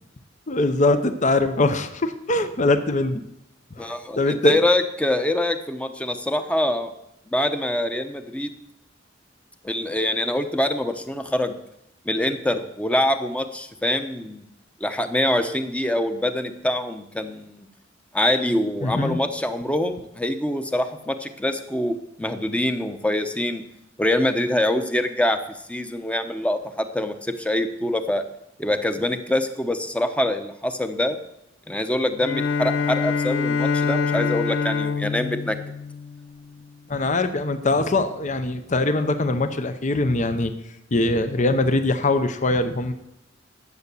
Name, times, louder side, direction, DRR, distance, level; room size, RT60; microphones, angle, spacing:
voice 1, 0.5-3.2 3.8-4.6 18.8-19.2 36.9-40.5 40.9-42.9, left 2 dB, 40° left, 9 dB, 0.8 m, -22 dB
voice 2, 3.8-6.9 7.3-8.5 9.6-11.6 12.0-14.5 14.8-17.6 18.1-23.6 24.0-25.4 25.7-28.2 28.6-31.2 31.7-35.6, left 1 dB, 5° left, 8 dB, 0.8 m, -24 dB
Bowed string instrument, 32.2-36.6, left 5 dB, 80° left, 0.6 m, -25 dB
11.0 x 8.0 x 6.9 m, 0.81 s
head